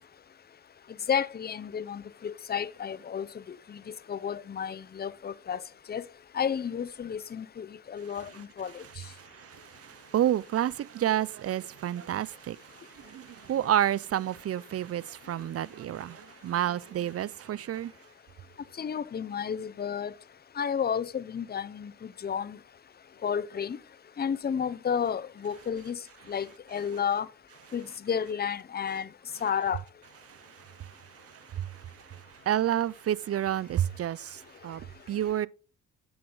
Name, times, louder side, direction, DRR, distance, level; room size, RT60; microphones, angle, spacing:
voice 1, 1.1-3.8 4.1-5.6 5.9-6.0 6.3-8.8 18.8-20.1 20.6-21.9 22.2-22.6 23.2-23.8 24.2-26.0 26.3-27.3 27.7-29.1 29.4-29.8, left 7 dB, 30° left, 0.6 m, -31 dB
voice 2, 9.2-17.9 30.3-35.5, right 11 dB, 50° right, 0.5 m, -30 dB
9.5 x 7.5 x 3.9 m
supercardioid pair, 65°, 32 cm